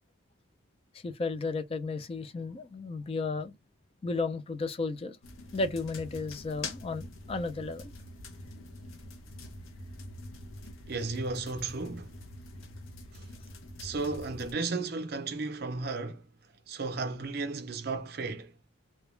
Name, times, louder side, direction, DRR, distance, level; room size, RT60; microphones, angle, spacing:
voice 1, 1.0-3.5 4.0-5.2 5.5-7.9, left 3 dB, 30° left, 0.3 m, -33 dB
sound 1, 5.2-14.5, left 2 dB, 85° left, 0.6 m, -45 dB
voice 2, 10.9-12.1 13.8-16.2 16.7-18.5, right 3 dB, 50° right, 0.5 m, -34 dB
2.2 x 2.0 x 3.0 m
head